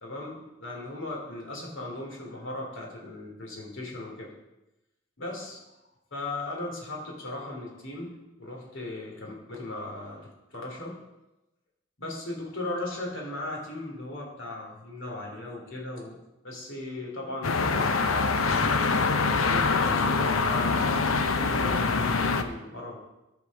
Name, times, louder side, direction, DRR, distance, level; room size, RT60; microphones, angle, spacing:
voice 1, 0.0-4.3 5.2-5.6 6.1-11.0 12.0-16.2 16.4-18.8 19.4-23.0, left 2 dB, 65° left, -1 dB, 2.8 m, -37 dB
sound 1, 17.4-22.4, left 4 dB, 85° left, 0.8 m, -24 dB
14.5 x 5.2 x 5.2 m, 0.98 s
head